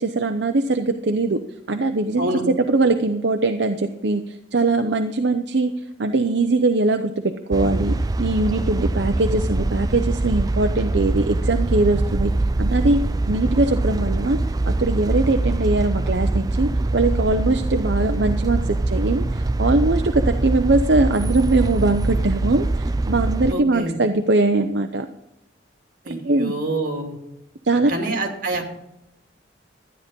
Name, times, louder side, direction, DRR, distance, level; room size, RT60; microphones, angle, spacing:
voice 1, 0.0-1.4 1.7-2.3 2.7-5.7 6.0-12.3 12.6-13.0 13.3-14.4 14.7-25.1 26.1-26.5 27.6-27.9, right 2 dB, 65° right, 6 dB, 0.7 m, -21 dB
sound 1, 7.5-23.5, right 2 dB, 20° right, 0.3 m, -23 dB
voice 2, 23.5-23.9 26.0-27.2 27.9-28.6, right 2 dB, 45° right, 2 dB, 2.7 m, -26 dB
13.0 x 9.8 x 5.3 m, 0.88 s
head